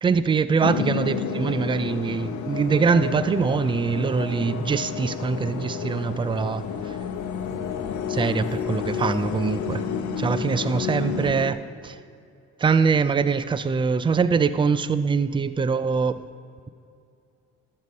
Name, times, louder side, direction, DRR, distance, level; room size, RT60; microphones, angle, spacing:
voice 1, 0.0-7.0 8.1-9.8 10.2-12.0 12.6-16.2, right 5 dB, 15° right, 14 dB, 0.3 m, -23 dB
sound 1, 0.6-11.5, left 6 dB, 70° left, 0.8 m, -30 dB
13.0 x 5.5 x 5.3 m, 2.5 s
cardioid pair, 90°, 30 cm